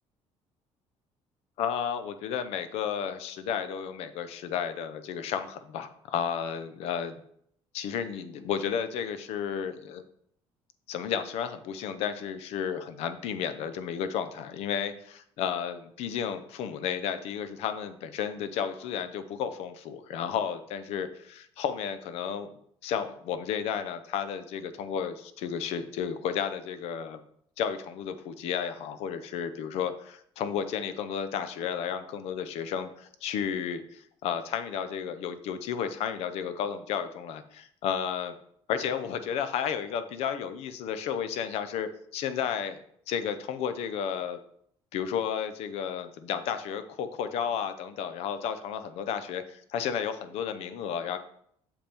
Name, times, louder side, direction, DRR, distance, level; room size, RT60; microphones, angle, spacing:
voice 1, 1.6-7.1 7.7-10.0 10.9-22.5 22.8-27.2 27.6-38.4 38.7-42.8 43.1-44.4 44.9-51.2, left 8 dB, 70° left, 11 dB, 0.7 m, -32 dB
7.1 x 5.3 x 4.5 m, 0.67 s
cardioid pair, 165°, 11 cm